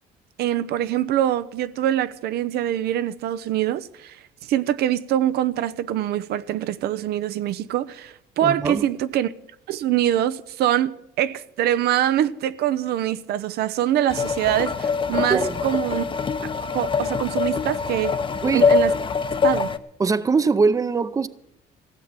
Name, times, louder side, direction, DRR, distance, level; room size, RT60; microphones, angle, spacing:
voice 1, 0.4-9.3 9.7-10.9 11.2-16.0 16.4-18.2 18.5-18.9 19.4-19.7, right 12 dB, 70° right, 0.7 m, -24 dB
voice 2, 8.4-8.8 15.3-15.6 18.4-18.7 20.0-21.3, right 4 dB, 20° right, 0.6 m, -22 dB
sound 1, 14.1-19.8, left 5 dB, 30° left, 0.8 m, -23 dB
16.0 x 7.3 x 9.6 m
cardioid pair, 110°, 17 cm